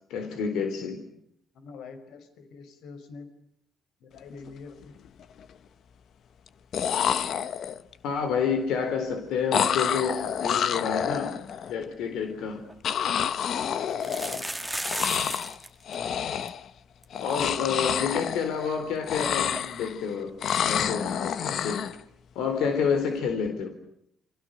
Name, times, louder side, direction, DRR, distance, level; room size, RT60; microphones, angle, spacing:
voice 1, 0.1-1.0 8.0-11.4 11.7-12.7 17.2-21.9 22.3-23.7, left 6 dB, 90° left, 6 dB, 4.1 m, -29 dB
voice 2, 1.5-3.3 4.0-4.9 13.5-14.5, left 4 dB, 70° left, 10 dB, 5.1 m, -46 dB
sound 1, 4.3-4.5 4.8-5.4 6.5-6.6 6.7-7.9 9.5-11.7 12.8-14.6 14.8-15.6 15.9-16.7 17.1-18.8 19.0-20.0 20.4-22.0, left 8 dB, 50° left, 1.1 m, -28 dB
sound 2, 12.3-12.4 12.7-12.8 13.9-15.7 15.9-16.0 16.2-16.5 17.0-17.1 17.4-17.5 19.6-19.7, right 1 dB, 5° right, 1.6 m, -34 dB
29.0 x 27.5 x 6.8 m, 0.75 s
cardioid pair, 160°, 0 cm